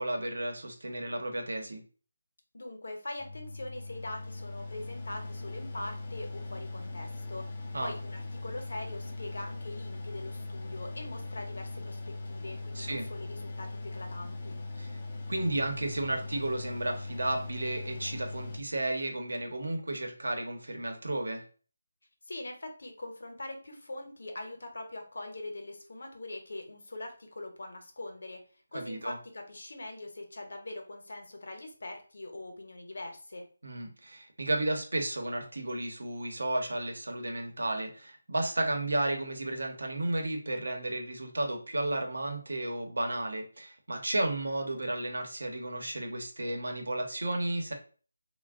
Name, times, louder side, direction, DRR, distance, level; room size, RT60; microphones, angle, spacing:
voice 1, 0.0-1.8 7.7-7.9 12.7-13.1 14.8-14.9 15.3-21.4 28.7-29.2 33.6-47.7, right 1 dB, 80° right, 3 dB, 0.9 m, -33 dB
voice 2, 2.5-14.6 22.3-28.4 28.7-33.5, left 2 dB, 60° left, 3 dB, 0.8 m, -42 dB
Mechanical fan, 3.2-18.6, left 2 dB, 20° left, 0.4 m, -40 dB
2.5 x 2.2 x 3.5 m, 0.40 s
figure-of-eight pair, 175°, 0 cm